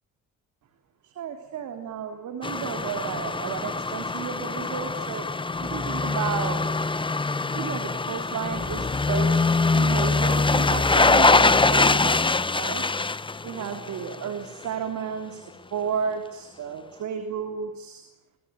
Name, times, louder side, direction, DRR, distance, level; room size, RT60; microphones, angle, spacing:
voice 1, 1.0-5.3 5.6-6.6 7.5-9.4 9.7-12.8 13.4-15.4 15.7-18.0, right 7 dB, 70° right, 7 dB, 3.4 m, -32 dB
sound 1, 2.4-14.3 14.6-14.7, left 3 dB, 15° left, 1.0 m, -23 dB
25.5 x 20.0 x 9.8 m, 0.97 s
cardioid pair, 90°, 30 cm